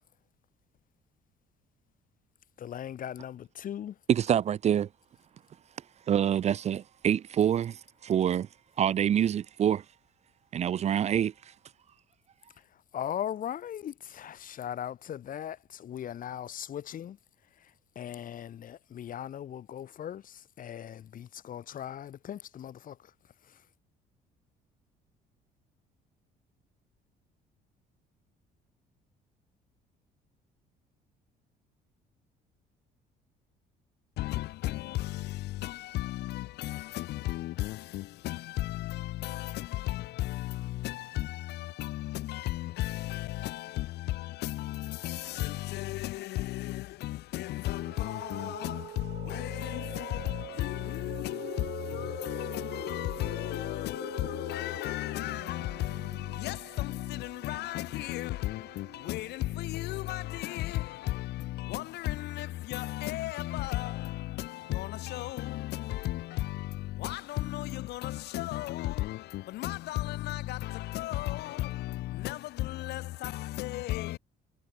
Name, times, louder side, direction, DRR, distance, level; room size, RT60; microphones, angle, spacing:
voice 1, 2.6-4.0 12.6-17.2 17.6-23.1 23.4-23.6, left 10 dB, 55° left, 3.6 m, -39 dB
voice 2, 4.1-4.9 6.1-7.8 8.0-8.5 8.8-9.8 10.5-11.3, right 9 dB, 40° right, 0.5 m, -26 dB
voice 3, 34.2-74.2, left 16 dB, 80° left, 2.6 m, -35 dB
sound 1, 47.6-60.4, right 13 dB, 65° right, 3.0 m, -46 dB
cardioid pair, 110°, 17 cm